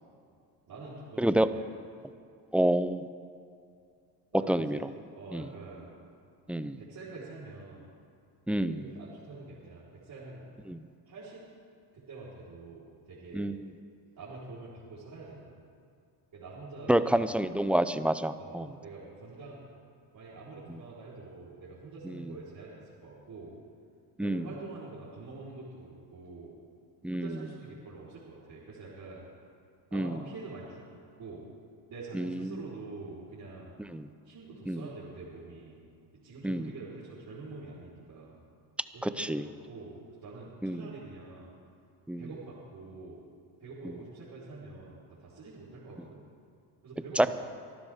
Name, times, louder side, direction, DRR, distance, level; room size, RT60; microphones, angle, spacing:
voice 1, 0.7-1.7 4.3-5.9 6.6-7.9 8.6-10.6 11.0-11.4 11.9-13.6 14.2-15.6 16.3-17.3 18.4-19.7 20.1-23.5 24.2-26.5 27.1-29.2 29.9-30.8 31.2-31.5 31.9-33.7 34.2-35.8 36.2-38.4 38.9-40.0 40.2-41.5 42.2-43.2 43.6-46.2 46.8-47.3, right 3 dB, 45° right, -9 dB, 4.2 m, -46 dB
voice 2, 1.2-1.5 2.5-3.0 4.5-4.9 5.3-5.4 6.5-6.8 8.5-8.9 10.7-10.8 13.3-13.7 16.9-18.7 22.1-22.3 24.2-24.5 27.0-27.3 29.9-30.2 32.1-32.6 33.9-34.1 34.7-34.8 36.4-36.7 39.0-39.4 40.6-40.9 42.1-42.3 47.2-47.3, right 1 dB, 5° right, 12 dB, 0.5 m, -28 dB
25.0 x 12.0 x 3.6 m, 2.4 s
supercardioid pair, 80°, 47 cm